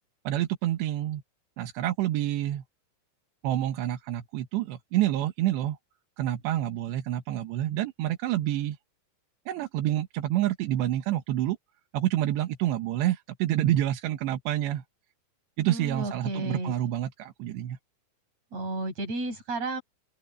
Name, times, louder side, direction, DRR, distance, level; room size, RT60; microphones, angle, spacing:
voice 1, 0.2-1.2 1.6-2.6 3.4-5.8 6.2-8.8 9.5-11.6 11.9-14.8 15.6-17.8, right 13 dB, 85° right, 3.4 m, -28 dB
voice 2, 15.6-16.7 18.5-19.8, right 2 dB, 40° right, 8.2 m, -32 dB
open air
omnidirectional pair, 4.9 m